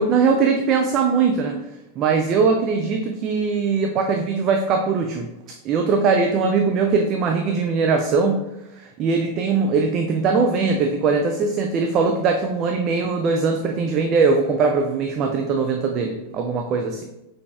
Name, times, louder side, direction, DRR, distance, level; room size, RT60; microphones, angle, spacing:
voice 1, 0.0-1.6 2.0-8.4 8.8-17.0, right 4 dB, 35° right, 4 dB, 0.4 m, -21 dB
5.7 x 3.3 x 2.4 m, 0.94 s
figure-of-eight pair, 90°, 0 cm